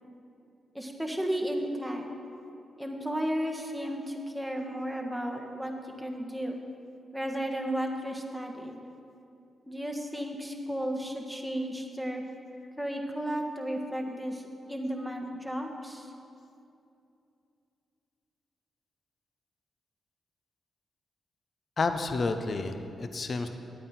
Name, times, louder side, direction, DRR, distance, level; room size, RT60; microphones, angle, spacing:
voice 1, 0.7-2.0 2.8-6.5 7.1-8.8 9.7-12.2 12.8-16.1, equal, ahead, 1 dB, 1.4 m, -34 dB
voice 2, 21.8-23.5, left 3 dB, 55° left, 8 dB, 0.7 m, -30 dB
9.9 x 8.6 x 4.3 m, 2.6 s
supercardioid pair, 40°, 0 cm